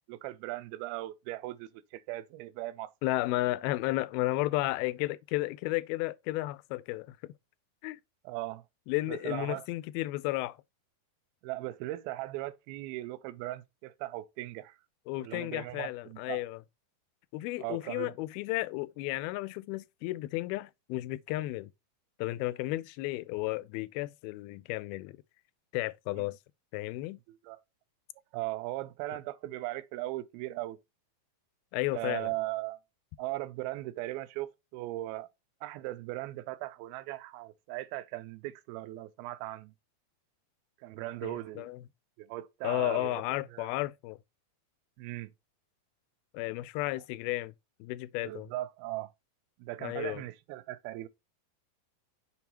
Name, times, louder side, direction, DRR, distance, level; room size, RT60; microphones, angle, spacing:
voice 1, 0.1-2.9 8.2-8.6 9.1-9.7 11.4-14.8 15.2-16.4 17.6-18.1 26.2-26.3 27.3-27.6 28.3-30.8 31.9-32.8 33.2-35.3 35.6-39.7 40.8-41.7 42.2-43.2 43.5-43.7 45.0-45.3 48.2-49.1 49.6-51.1, right 17 dB, 85° right, 2.5 m, -38 dB
voice 2, 3.0-7.2 7.8-8.0 8.9-10.6 15.1-16.6 17.3-21.7 22.2-25.2 25.7-26.4 26.7-27.2 31.7-32.3 41.2-41.8 42.6-44.2 46.3-47.5 47.8-48.5 49.8-50.2, left 18 dB, 85° left, 2.4 m, -33 dB
7.0 x 4.6 x 2.9 m
omnidirectional pair, 4.3 m